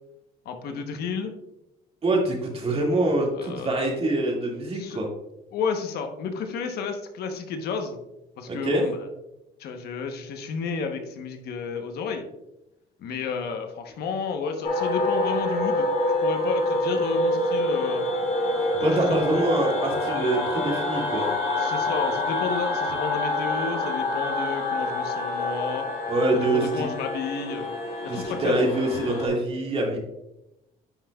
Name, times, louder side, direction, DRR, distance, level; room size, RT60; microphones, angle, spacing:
voice 1, 0.4-1.3 3.3-3.9 4.7-5.0 5.5-8.0 8.4-9.0 9.6-12.3 13.0-15.9 16.2-18.0 18.8-19.2 21.6-25.9 26.3-27.7 28.1-28.7, left 5 dB, 70° left, 5 dB, 1.0 m, -31 dB
voice 2, 2.0-5.1 8.5-8.8 18.6-21.3 26.1-26.9 28.1-30.0, right 2 dB, 35° right, 0 dB, 2.1 m, -25 dB
sound 1, 14.6-29.3, left 2 dB, 55° left, 2.4 m, -27 dB
10.5 x 5.6 x 2.3 m, 0.91 s
cardioid pair, 110°, 17 cm